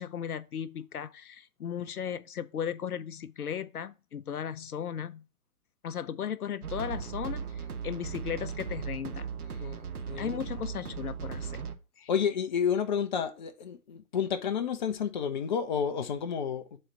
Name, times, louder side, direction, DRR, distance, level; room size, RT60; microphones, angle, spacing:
voice 1, 0.0-5.2 5.8-9.3 10.2-11.6 12.0-12.1, left 8 dB, 80° left, 0.6 m, -36 dB
sound 1, 6.6-11.8, right 6 dB, 80° right, 1.1 m, -37 dB
voice 2, 10.1-10.5 12.1-16.8, left 7 dB, 30° left, 0.7 m, -30 dB
7.6 x 3.1 x 5.4 m
figure-of-eight pair, 135°, 44 cm